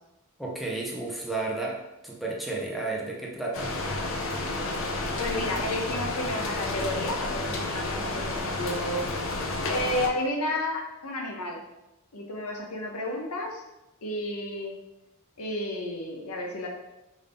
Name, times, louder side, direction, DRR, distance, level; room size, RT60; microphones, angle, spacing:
voice 1, 0.4-3.7, right 2 dB, ahead, -3 dB, 0.5 m, -32 dB
sound 1, 3.5-10.1, left 2 dB, 60° left, 0.6 m, -31 dB
voice 2, 5.2-9.0 9.7-11.6 12.1-13.6 14.0-14.8 15.4-16.7, left 1 dB, 85° left, 0 dB, 0.9 m, -32 dB
5.0 x 2.7 x 3.4 m, 0.97 s
head